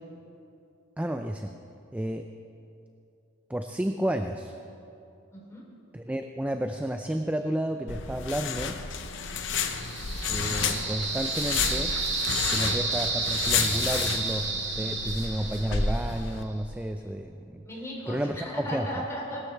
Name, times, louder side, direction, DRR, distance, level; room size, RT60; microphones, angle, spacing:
voice 1, 1.0-1.5 1.9-2.3 3.5-4.5 5.9-8.8 10.3-11.9 12.5-17.7 18.1-18.9, right 1 dB, 5° right, 6 dB, 0.4 m, -31 dB
voice 2, 5.3-5.6 17.6-19.4, equal, 15° left, -5 dB, 3.4 m, -36 dB
sound 1, 7.9-16.4, left 5 dB, 60° left, 0.8 m, -31 dB
sound 2, 9.4-16.3, right 3 dB, 55° right, 2.3 m, -31 dB
20.0 x 13.0 x 3.4 m, 2.7 s
head